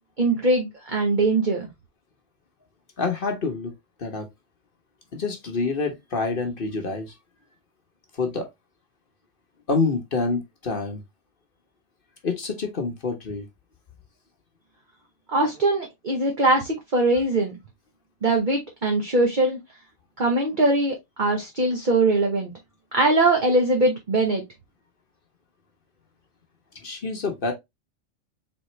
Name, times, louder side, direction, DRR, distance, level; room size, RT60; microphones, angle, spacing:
voice 1, 0.2-1.7 15.3-17.5 18.2-19.6 20.2-22.5 22.9-24.4, right 2 dB, 40° right, 1.0 m, -21 dB
voice 2, 3.0-3.7 4.0-4.3 5.1-7.2 8.1-8.5 9.7-11.0 12.2-13.4 26.7-27.5, left 4 dB, 45° left, 1.0 m, -27 dB
4.1 x 3.6 x 3.0 m
omnidirectional pair, 1.4 m